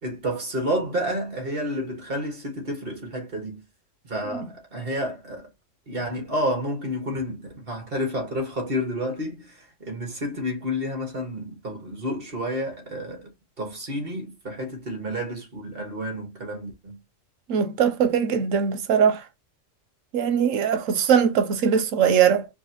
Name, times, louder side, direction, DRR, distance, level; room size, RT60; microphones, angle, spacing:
voice 1, 0.0-3.6 4.0-5.5 5.9-13.3 13.6-17.0, equal, 50° right, 1.8 m, -30 dB
voice 2, 17.5-19.2 20.1-22.5, right 7 dB, 90° right, 1.1 m, -21 dB
4.5 x 2.7 x 2.9 m
omnidirectional pair, 1.3 m